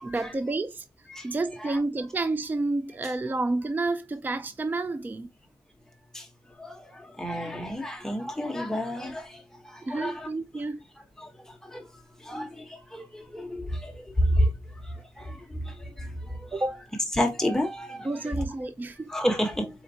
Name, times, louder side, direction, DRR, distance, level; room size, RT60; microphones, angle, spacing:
voice 1, 0.0-0.8 1.2-5.3 9.8-10.8 16.5-16.8 18.0-19.1, right 2 dB, 20° right, 0.4 m, -30 dB
voice 2, 6.6-9.4 9.7-10.3 11.2-11.3 11.7-11.9 12.3-14.5 15.2-15.4 15.7-16.5 17.2-18.1 19.1-19.7, equal, 5° left, 1.0 m, -30 dB
4.3 x 3.6 x 2.7 m
wide cardioid pair, 115°, 9 cm